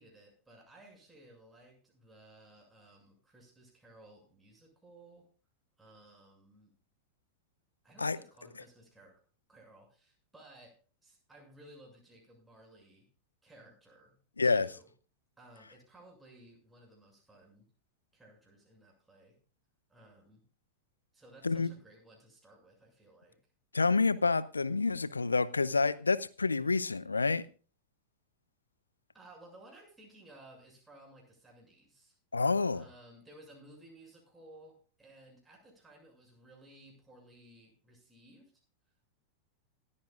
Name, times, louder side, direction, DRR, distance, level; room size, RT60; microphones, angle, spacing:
voice 1, 0.0-5.2 5.8-6.7 7.8-9.1 9.5-10.7 11.0-13.1 13.4-14.2 14.4-14.9 15.4-17.7 18.1-19.4 19.9-20.4 21.1-23.4 29.1-32.2 32.7-38.5, right 1 dB, 10° right, -1 dB, 6.9 m, -57 dB
voice 2, 14.4-14.7 21.4-21.7 23.7-27.4 32.3-32.8, left 4 dB, 80° left, 17 dB, 0.6 m, -28 dB
27.5 x 9.8 x 2.5 m, 0.39 s
figure-of-eight pair, 90°, 0 cm